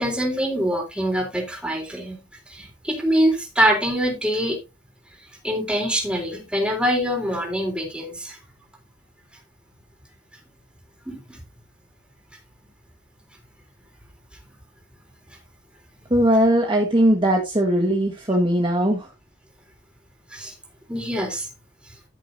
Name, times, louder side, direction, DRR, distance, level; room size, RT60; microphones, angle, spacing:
voice 1, 0.0-4.6 5.4-8.4 11.1-11.4 20.3-20.6 20.9-21.5 21.8-21.9, equal, 5° right, 1 dB, 3.5 m, -24 dB
voice 2, 16.1-19.1, right 1 dB, 30° right, 1 dB, 1.5 m, -19 dB
14.0 x 6.5 x 2.7 m, 0.25 s
head